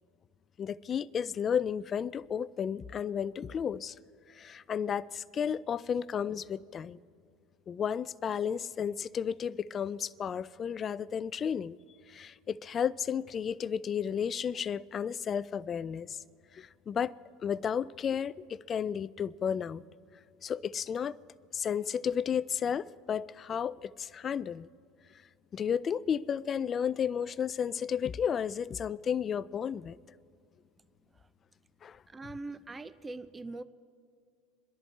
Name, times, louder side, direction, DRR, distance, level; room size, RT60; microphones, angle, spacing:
voice 1, 0.6-3.9 4.4-7.0 7.7-11.8 12.1-16.2 16.5-17.1 17.4-19.8 20.4-21.2 21.5-24.7 25.5-30.0 31.8-32.0, left 7 dB, 35° left, 0.4 m, -33 dB
voice 2, 32.1-33.6, right 2 dB, 20° right, 0.5 m, -42 dB
28.0 x 11.0 x 3.3 m
supercardioid pair, 100°, 0 cm